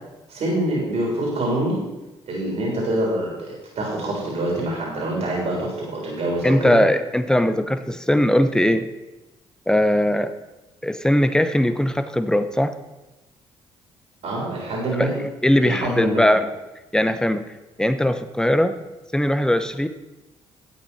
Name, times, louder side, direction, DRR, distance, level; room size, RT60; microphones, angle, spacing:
voice 1, 0.3-1.8 2.3-6.8 14.2-15.2 15.6-16.4, right 1 dB, 60° right, -3 dB, 3.9 m, -25 dB
voice 2, 6.4-8.9 9.7-10.3 10.8-12.7 15.0-16.5 16.9-17.4 17.8-18.8 19.1-19.9, left 1 dB, 5° left, 10 dB, 0.9 m, -20 dB
12.0 x 8.2 x 4.3 m, 1.1 s
hypercardioid pair, 55°, 13 cm